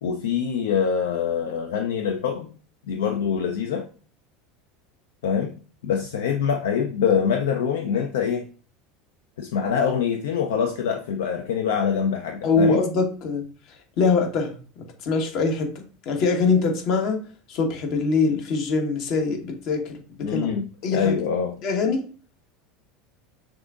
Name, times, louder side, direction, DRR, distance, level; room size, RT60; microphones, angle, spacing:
voice 1, 0.0-2.5 2.9-3.9 5.2-5.5 5.8-8.4 9.4-12.8 20.2-21.6, left 7 dB, 70° left, 5 dB, 0.4 m, -24 dB
voice 2, 12.4-13.4 14.0-14.6 15.0-17.2 17.5-20.5 20.8-21.1 21.6-22.0, left 4 dB, 55° left, 3 dB, 1.0 m, -23 dB
6.0 x 2.6 x 2.4 m, 0.39 s
figure-of-eight pair, 75°, 0 cm